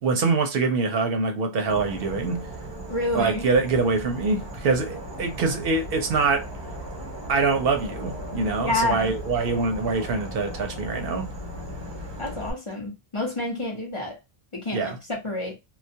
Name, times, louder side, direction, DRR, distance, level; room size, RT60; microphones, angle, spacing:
voice 1, 0.0-2.5 3.1-6.5 7.3-11.3 14.7-15.0, right 4 dB, 65° right, 0.7 m, -24 dB
Insect / Frog, 1.7-12.5, equal, 35° right, 0.5 m, -37 dB
voice 2, 2.9-3.4 8.6-9.1 12.2-14.2 14.5-15.5, left 2 dB, 35° left, 0.7 m, -29 dB
2.2 x 2.1 x 2.6 m
omnidirectional pair, 1.1 m